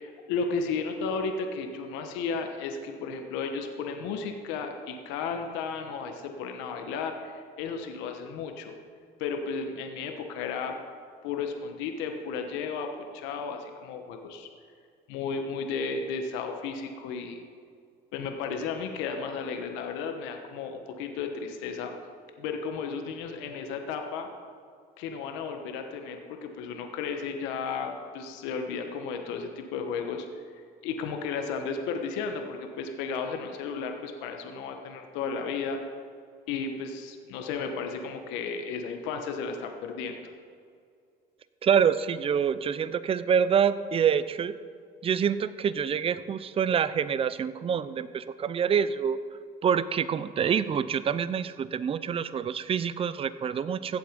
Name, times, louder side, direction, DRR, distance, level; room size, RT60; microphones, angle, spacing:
voice 1, 0.0-8.7 9.2-10.7 11.2-12.9 13.1-14.5 15.1-17.4 18.1-21.9 22.4-24.3 25.0-30.3 30.8-35.8 36.5-40.2, left 5 dB, 85° left, 5 dB, 1.2 m, -34 dB
voice 2, 41.6-44.5 45.0-49.2 49.6-54.0, right 7 dB, 30° right, 15 dB, 0.5 m, -26 dB
15.5 x 7.7 x 5.2 m, 2.3 s
cardioid pair, 115°, 19 cm